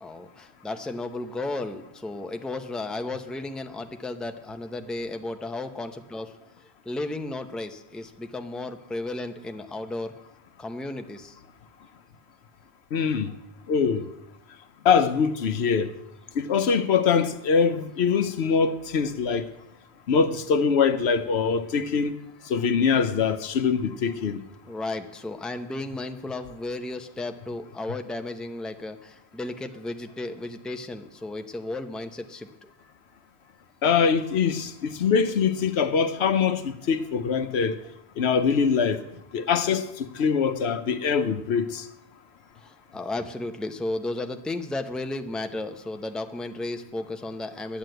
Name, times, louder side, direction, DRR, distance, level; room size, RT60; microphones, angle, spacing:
voice 1, 0.0-6.4 6.8-10.1 10.6-11.4 24.7-32.7 42.6-47.8, left 2 dB, ahead, 0.6 m, -34 dB
voice 2, 12.9-13.3 13.7-14.0 14.8-15.9 16.4-19.5 20.1-22.2 22.5-24.4 33.8-37.8 38.2-39.0 39.3-41.8, left 6 dB, 85° left, 1.0 m, -23 dB
11.0 x 9.1 x 7.8 m
omnidirectional pair, 1.1 m